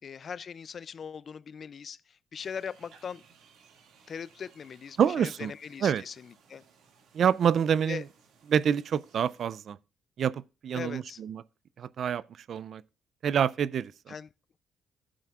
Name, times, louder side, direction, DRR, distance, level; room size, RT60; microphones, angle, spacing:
voice 1, 0.0-3.2 4.1-6.6 7.8-8.0 10.7-11.2 14.1-14.3, left 7 dB, 50° left, 0.3 m, -40 dB
sound 1, 2.4-9.5, right 6 dB, 85° right, 2.0 m, -61 dB
voice 2, 5.0-5.5 5.8-6.0 7.1-8.0 8.5-9.8 10.2-11.4 11.8-12.2 12.5-12.8 13.2-14.1, right 8 dB, 60° right, 0.4 m, -27 dB
11.5 x 9.0 x 2.4 m
cardioid pair, 90°, 0 cm